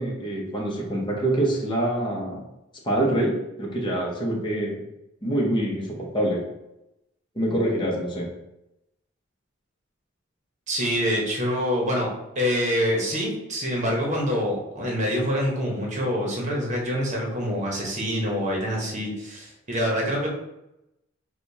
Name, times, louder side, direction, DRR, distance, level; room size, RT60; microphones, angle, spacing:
voice 1, 0.0-2.4 2.8-4.8 5.2-6.4 7.3-8.3, right 1 dB, 25° left, -2 dB, 0.9 m, -25 dB
voice 2, 10.7-12.1 12.3-20.3, equal, 35° right, -2 dB, 1.0 m, -26 dB
6.5 x 2.3 x 2.7 m, 0.90 s
head